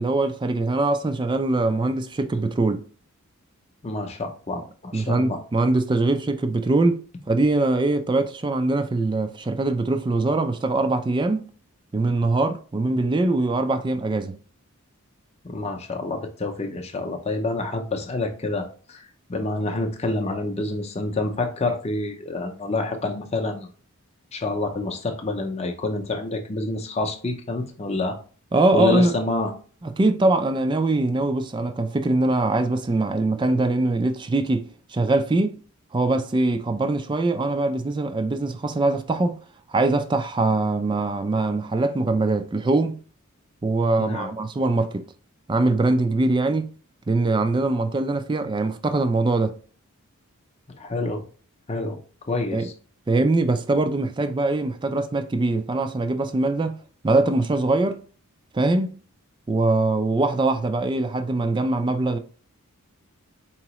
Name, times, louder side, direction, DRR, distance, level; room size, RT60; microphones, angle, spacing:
voice 1, 0.0-2.8 4.9-7.0 7.3-11.5 11.9-14.4 28.5-29.1 29.8-35.6 35.9-39.4 39.7-43.0 43.6-45.1 45.5-46.7 47.1-49.6 52.5-52.7 53.1-56.8 57.0-58.0 58.5-59.0 59.5-62.2, right 2 dB, 20° right, 0.3 m, -22 dB
voice 2, 3.8-5.4 15.4-23.7 24.3-28.2 28.7-29.5 44.0-44.3 50.8-51.2 51.7-52.0 52.3-52.7, left 2 dB, 30° left, 0.6 m, -28 dB
4.6 x 2.9 x 2.9 m
head